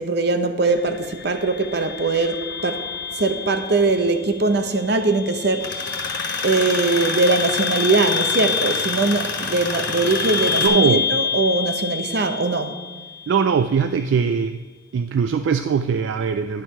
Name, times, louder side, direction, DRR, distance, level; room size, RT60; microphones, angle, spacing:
voice 1, 0.0-2.8 3.2-6.1 6.4-12.8, right 3 dB, 60° right, 8 dB, 0.7 m, -21 dB
sound 1, 0.6-13.6, left 6 dB, 55° left, 0.5 m, -28 dB
Tools, 5.6-10.7, left 3 dB, 90° left, 1.5 m, -29 dB
voice 2, 10.6-11.1 13.3-14.7 14.9-16.6, right 6 dB, 80° right, 9 dB, 0.3 m, -21 dB
11.0 x 4.6 x 5.5 m, 1.3 s
head